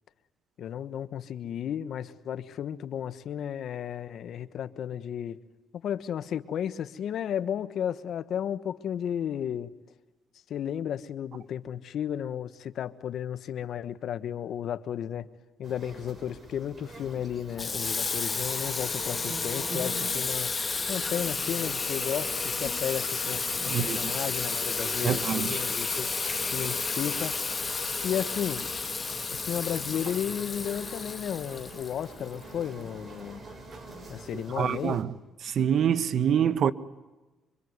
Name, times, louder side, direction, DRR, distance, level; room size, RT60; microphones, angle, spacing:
voice 1, 0.6-5.4 5.7-9.7 10.5-15.3 15.6-26.1 26.4-27.4 28.0-28.7 29.3-33.4 34.1-35.0, left 9 dB, 70° left, 1.3 m, -33 dB
sound 1, 15.6-35.0, right 2 dB, 40° right, 5.6 m, -44 dB
Water tap faucet / Sink (filling or washing), 17.6-32.3, left 4 dB, 30° left, 1.5 m, -32 dB
voice 2, 23.7-24.1 25.0-25.6 34.5-35.1 35.4-36.7, right 8 dB, 60° right, 1.1 m, -26 dB
25.5 x 24.0 x 9.6 m
cardioid pair, 90°, 0 cm